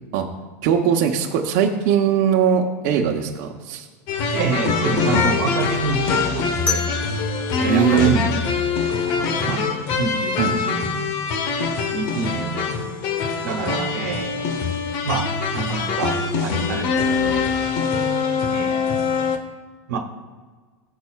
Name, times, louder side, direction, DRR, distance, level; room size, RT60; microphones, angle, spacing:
voice 1, 0.6-3.9 7.7-8.2 10.4-10.5, right 8 dB, 60° right, 0 dB, 0.9 m, -20 dB
sound 1, 4.1-19.4, left 5 dB, 55° left, 1.1 m, -23 dB
voice 2, 4.3-6.8 7.6-8.3 8.9-9.6 10.0-11.0 11.9-12.8 13.4-14.5 15.0-15.3 15.5-17.4 18.5-18.8 19.9-20.0, right 5 dB, 80° right, 4 dB, 1.2 m, -27 dB
sound 2, 6.7-9.5, left 4 dB, 15° left, 2.5 m, -31 dB
15.0 x 6.7 x 2.4 m, 1.5 s
hypercardioid pair, 105°, 9 cm